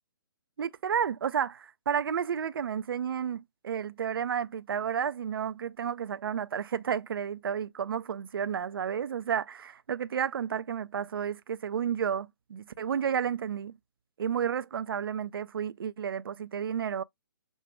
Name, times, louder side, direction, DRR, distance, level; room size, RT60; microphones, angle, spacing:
voice 1, 0.6-13.7 14.2-17.0, right 8 dB, 70° right, 0.4 m, -31 dB
5.2 x 2.2 x 3.4 m
hypercardioid pair, 140°, 12 cm